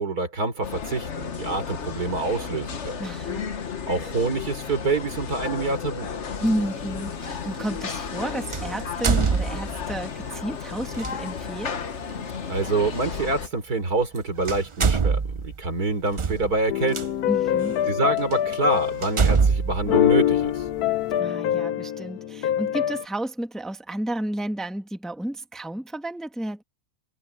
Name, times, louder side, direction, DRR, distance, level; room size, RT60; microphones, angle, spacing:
voice 1, 0.0-3.0 3.9-6.1 12.5-17.1 17.9-20.6, right 3 dB, 90° right, 4.5 m, -26 dB
sound 1, 0.6-13.5, left 6 dB, 50° left, 1.5 m, -33 dB
voice 2, 3.0-3.4 6.4-11.8 17.3-17.8 21.2-26.6, right 1 dB, ahead, 1.4 m, -31 dB
sound 2, 6.4-6.6 8.5-10.0 10.9-11.1 13.0-13.1 14.0-14.2 14.4-17.0 17.7-17.8 18.3-18.4 19.0-20.8, right 5 dB, 50° right, 0.3 m, -24 dB
sound 3, 16.7-19.3 19.7-23.0, left 11 dB, 90° left, 1.2 m, -24 dB
omnidirectional pair, 1.6 m